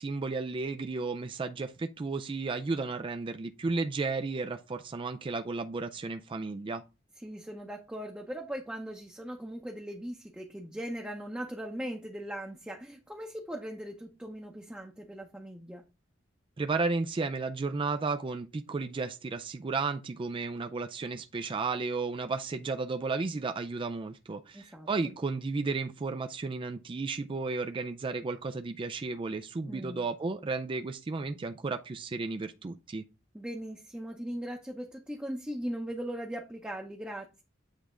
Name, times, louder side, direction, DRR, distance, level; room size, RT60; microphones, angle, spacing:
voice 1, 0.0-6.8 16.6-33.0, right 3 dB, 25° right, 0.4 m, -33 dB
voice 2, 7.2-15.8 24.5-24.9 29.7-30.1 33.3-37.4, equal, 5° right, 0.7 m, -39 dB
8.1 x 3.4 x 3.7 m
head